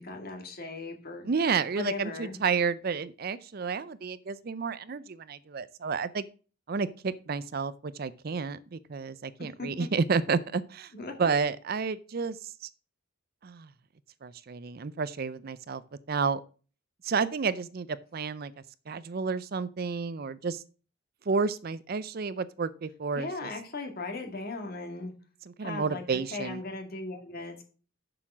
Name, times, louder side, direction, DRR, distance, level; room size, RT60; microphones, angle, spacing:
voice 1, 0.0-1.2 1.7-2.4 9.6-9.7 10.9-11.1 23.2-25.1 25.6-27.6, left 3 dB, 45° left, 2.1 m, -37 dB
voice 2, 1.2-6.2 6.7-10.9 11.2-12.4 13.4-13.7 14.2-15.8 16.1-16.4 17.0-18.5 18.9-20.6 21.3-23.5 25.6-26.6, right 5 dB, 45° right, 0.4 m, -31 dB
7.2 x 6.9 x 6.1 m
head